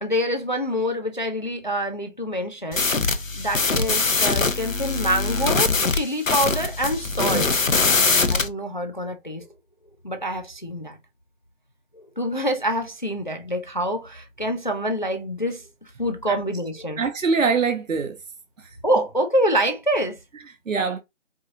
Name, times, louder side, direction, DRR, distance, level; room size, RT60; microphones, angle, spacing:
voice 1, 0.0-2.9 3.3-7.5 8.3-9.5 10.0-11.0 11.9-17.0 18.8-20.2, equal, 40° left, 0.4 m, -26 dB
sound 1, 2.7-8.5, left 3 dB, 90° left, 0.8 m, -22 dB
voice 2, 17.0-18.2 18.6-18.8 20.7-21.0, right 5 dB, 85° right, 0.7 m, -23 dB
4.7 x 2.6 x 2.5 m
figure-of-eight pair, 155°, 38 cm